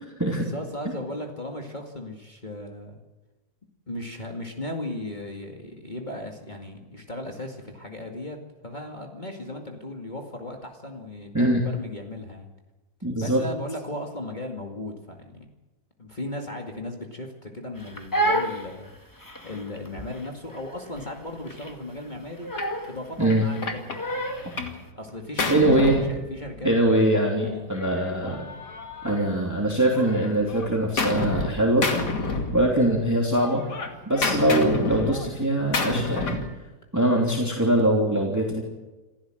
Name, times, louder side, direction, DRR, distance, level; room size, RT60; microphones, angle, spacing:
voice 1, 0.4-3.0 3.9-12.5 13.2-15.5 16.0-22.5 22.9-24.0 25.0-27.7, left 1 dB, 30° left, 1 dB, 2.3 m, -36 dB
voice 2, 13.0-13.4 23.2-23.4 25.5-26.0 26.6-28.5 29.0-31.9 32.5-33.6 34.1-36.4 36.9-38.6, right 1 dB, 10° right, -1 dB, 3.1 m, -22 dB
Crying sobbing, 17.8-24.6, right 1 dB, 10° left, 1.7 m, -30 dB
Gunshot gunfire, 22.6-22.8 23.3-24.8 25.1-26.8 27.7-29.6 29.9-31.5 31.8-33.0 33.3-36.5, left 3 dB, 85° left, 3.0 m, -30 dB
28.0 x 15.0 x 7.8 m, 1.1 s
omnidirectional pair, 1.7 m